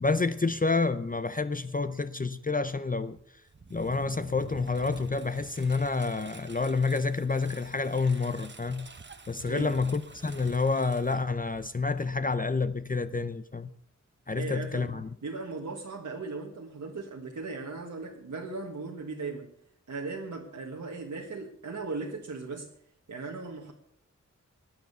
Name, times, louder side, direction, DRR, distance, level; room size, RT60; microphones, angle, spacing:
voice 1, 0.0-3.2 3.7-8.9 9.3-13.7 14.3-15.1, left 4 dB, 30° left, 0.6 m, -29 dB
Engine, 3.1-11.8, right 4 dB, 40° right, 1.0 m, -48 dB
voice 2, 9.5-9.8 14.3-15.0 15.2-19.5 19.9-22.7 23.1-23.7, right 3 dB, 80° right, 1.6 m, -37 dB
16.0 x 9.4 x 6.8 m
wide cardioid pair, 90°, 30 cm